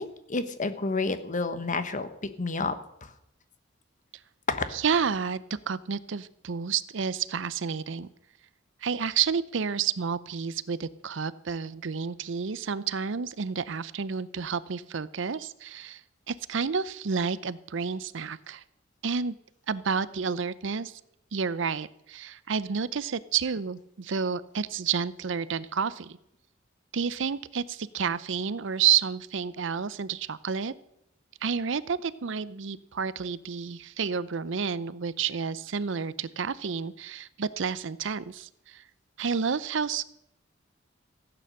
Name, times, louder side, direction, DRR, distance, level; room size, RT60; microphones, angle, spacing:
voice 1, 0.0-2.7 3.0-3.1 4.5-4.8, left 3 dB, 40° left, 11 dB, 1.1 m, -30 dB
voice 2, 4.7-8.1 8.8-16.0 16.3-18.6 19.0-19.3 19.7-21.0 21.3-26.2 26.9-30.7 31.4-38.8 39.2-40.0, right 6 dB, 70° right, 17 dB, 0.6 m, -30 dB
15.5 x 9.2 x 6.6 m, 0.79 s
head